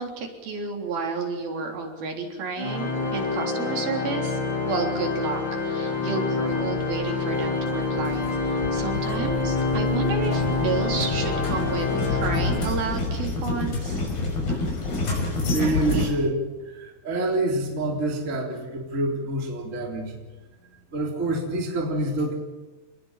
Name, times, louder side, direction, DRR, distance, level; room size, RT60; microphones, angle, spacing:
voice 1, 0.0-4.4 4.7-14.0, right 4 dB, 75° right, 2 dB, 5.6 m, -31 dB
Organ, 2.6-13.2, left 3 dB, 30° left, 3.3 m, -27 dB
sound 1, 6.5-16.1, left 3 dB, 85° left, 7.5 m, -29 dB
voice 2, 15.2-20.2 20.9-22.3, right 2 dB, 20° right, 1 dB, 3.6 m, -27 dB
27.5 x 20.5 x 7.5 m, 1.2 s
omnidirectional pair, 4.3 m